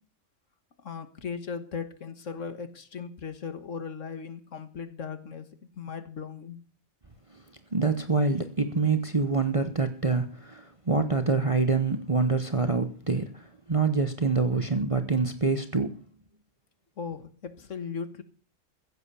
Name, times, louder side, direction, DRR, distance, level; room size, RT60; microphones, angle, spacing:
voice 1, 0.8-5.5 5.8-6.6 17.0-18.2, left 6 dB, 60° left, 1.7 m, -37 dB
voice 2, 7.7-13.3 13.7-15.9, right 4 dB, 25° right, 0.9 m, -26 dB
15.5 x 7.9 x 6.9 m
omnidirectional pair, 1.5 m